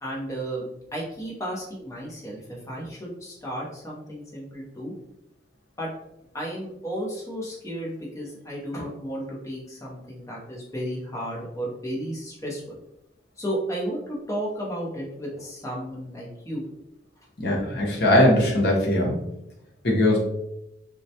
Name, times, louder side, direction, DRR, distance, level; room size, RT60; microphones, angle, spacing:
voice 1, 0.0-4.9 5.8-5.9 6.3-12.8 13.4-16.6, equal, 15° left, -4 dB, 0.6 m, -33 dB
voice 2, 17.4-19.2 19.8-20.2, left 1 dB, 55° left, -3 dB, 0.7 m, -20 dB
2.3 x 2.1 x 2.7 m, 0.83 s
head